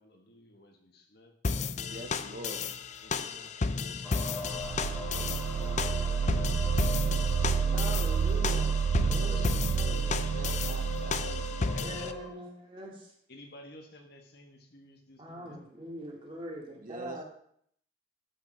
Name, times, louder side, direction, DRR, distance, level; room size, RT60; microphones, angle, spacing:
voice 1, 0.0-1.3 1.9-2.6 3.0-5.0 5.5-7.7 9.0-9.5 9.9-10.1 10.9-12.1 13.3-15.6, left 1 dB, 50° left, 1.5 m, -54 dB
sound 1, 1.4-12.1, left 4 dB, 35° left, 0.4 m, -33 dB
voice 2, 1.8-2.6 10.3-11.3 16.8-17.2, right 1 dB, 40° right, 0.7 m, -43 dB
sound 2, 4.0-12.3, left 2 dB, ahead, 2.2 m, -41 dB
sound 3, 4.4-12.2, right 6 dB, 70° right, 0.3 m, -30 dB
voice 3, 7.7-8.8 9.1-10.3 11.8-13.1 15.2-17.2, equal, 25° right, 2.2 m, -42 dB
13.5 x 5.5 x 4.5 m
head